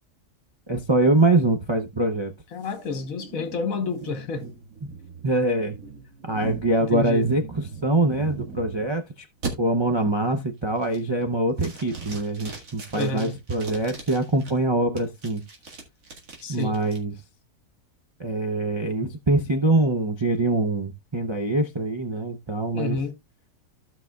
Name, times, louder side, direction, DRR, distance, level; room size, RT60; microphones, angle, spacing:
voice 1, 0.7-2.3 4.8-4.9 5.2-5.8 6.2-9.3 9.6-15.4 16.5-17.1 18.2-23.0, right 2 dB, 45° right, 0.3 m, -24 dB
voice 2, 2.5-4.5 6.9-7.2 12.9-13.4 16.4-16.8 22.7-23.1, left 4 dB, 60° left, 1.5 m, -29 dB
sound 1, 2.6-8.9 9.4-9.5 10.0-10.4 10.8-11.2 11.6-14.5 15.0-17.0, right 5 dB, 60° right, 2.3 m, -39 dB
15.5 x 5.7 x 2.3 m
omnidirectional pair, 1.6 m